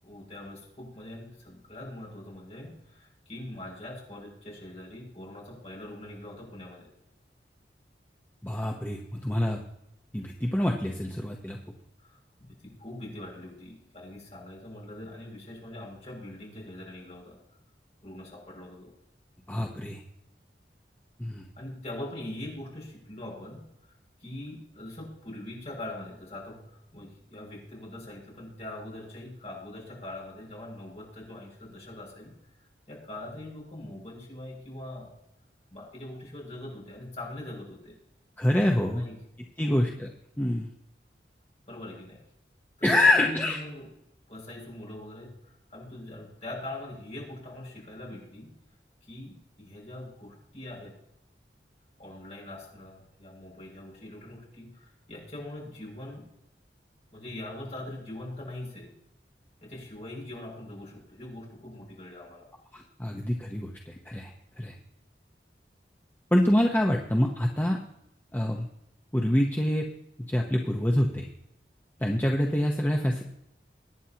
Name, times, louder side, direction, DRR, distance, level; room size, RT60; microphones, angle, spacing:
voice 1, 0.0-6.9 12.0-17.4 18.0-18.9 21.6-32.5 32.9-35.1 35.7-38.0 38.9-39.2 39.6-39.8 41.7-42.2 42.8-43.9 44.3-48.5 49.0-51.0 52.0-56.3 57.1-58.9 59.6-62.5, left 1 dB, 40° left, -3 dB, 6.2 m, -42 dB
voice 2, 8.4-9.6 10.1-11.6 19.5-20.0 21.2-21.4 38.4-39.0 39.6-40.1 40.4-40.7 42.8-43.6 62.7-64.3 64.6-64.7 66.3-67.8 68.3-68.7 69.1-69.8 70.3-71.3 72.0-73.2, left 1 dB, 10° left, 0 dB, 0.9 m, -26 dB
23.0 x 9.9 x 2.9 m, 0.82 s
head